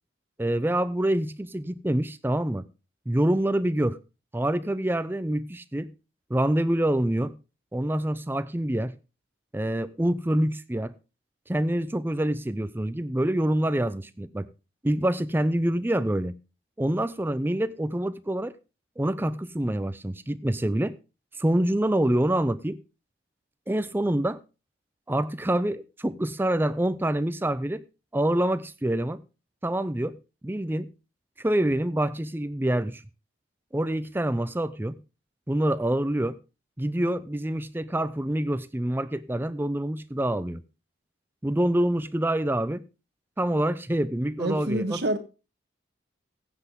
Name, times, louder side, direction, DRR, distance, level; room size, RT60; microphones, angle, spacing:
voice 1, 0.4-2.6 3.1-4.0 4.3-5.9 6.3-7.3 7.7-8.9 9.5-10.9 11.5-14.5 14.8-16.3 16.8-18.5 19.0-20.9 21.4-22.8 23.7-24.4 25.1-27.8 28.1-29.2 29.6-30.2 30.4-30.9 31.4-33.0 33.7-35.0 35.5-36.4 36.8-40.6 41.4-42.8 43.4-45.0, right 1 dB, 10° right, 0.5 m, -26 dB
voice 2, 44.4-45.2, right 1 dB, 60° right, 1.3 m, -27 dB
16.0 x 7.8 x 3.6 m
head